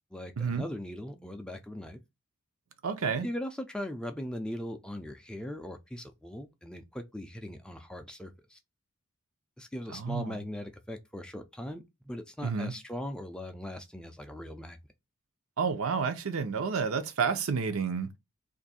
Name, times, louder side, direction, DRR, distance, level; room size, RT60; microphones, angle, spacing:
voice 1, 0.1-2.0 3.2-8.6 9.6-14.8, left 1 dB, 5° left, 0.4 m, -39 dB
voice 2, 2.8-3.3 9.9-10.4 12.4-12.7 15.6-18.2, right 5 dB, 70° right, 0.6 m, -30 dB
2.6 x 2.5 x 4.1 m
head